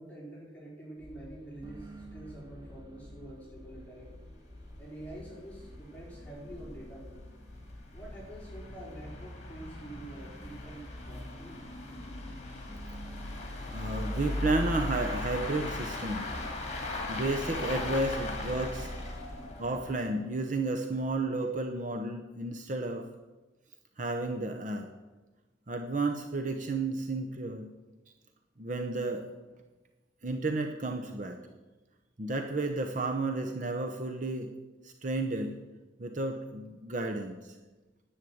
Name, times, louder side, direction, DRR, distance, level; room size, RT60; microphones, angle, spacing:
voice 1, 0.0-4.1 4.8-7.2 7.9-11.6 12.4-12.7 36.0-36.1, right 1 dB, 5° left, -6 dB, 4.7 m, -47 dB
sound 1, 1.0-15.8, equal, 20° right, 1.8 m, -50 dB
sound 2, 3.7-3.8 4.1-4.2 4.6-4.7 5.0-5.1 5.8-20.2, left 2 dB, 35° left, 2.4 m, -38 dB
voice 2, 13.7-16.2 17.1-18.9 19.6-23.1 24.0-24.9 25.7-27.7 28.6-29.2 30.2-31.4 32.2-34.5 34.8-35.5 36.0-37.6, right 2 dB, 40° right, 4 dB, 0.8 m, -32 dB
10.5 x 8.4 x 7.9 m, 1.2 s
head